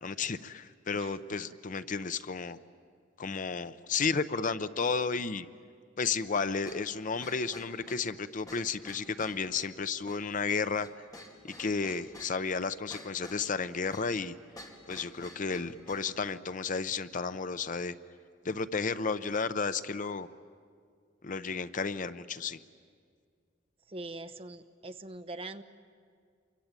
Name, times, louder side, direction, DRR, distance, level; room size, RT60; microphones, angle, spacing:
voice 1, 0.0-2.6 3.2-5.5 6.0-10.9 11.4-14.3 14.9-17.9 18.4-20.3 21.2-22.6, left 5 dB, 45° left, 12 dB, 0.7 m, -32 dB
voice 2, 0.9-1.4 23.9-25.6, right 2 dB, 30° right, 9 dB, 0.9 m, -43 dB
sound 1, 6.6-16.1, left 1 dB, 20° left, 2.8 m, -51 dB
28.0 x 23.5 x 9.0 m, 2.1 s
head